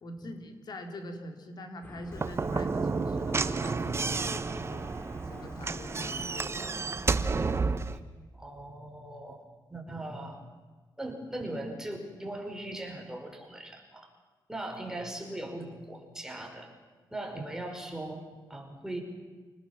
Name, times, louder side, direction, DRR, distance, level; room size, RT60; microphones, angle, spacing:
voice 1, 0.0-4.8 5.3-6.9, left 1 dB, 60° left, 5 dB, 3.7 m, -44 dB
sound 1, 1.8-7.6, left 1 dB, 25° left, 2.5 m, -48 dB
Slam / Knock, 2.1-8.0, right 4 dB, 35° right, 1.1 m, -31 dB
voice 2, 7.3-7.7 8.3-9.4 9.7-10.4 11.0-14.1 14.5-16.7 17.1-18.2 18.5-19.0, right 1 dB, 5° right, 2 dB, 5.5 m, -39 dB
27.5 x 19.5 x 7.4 m, 1.4 s
cardioid pair, 100°, 8 cm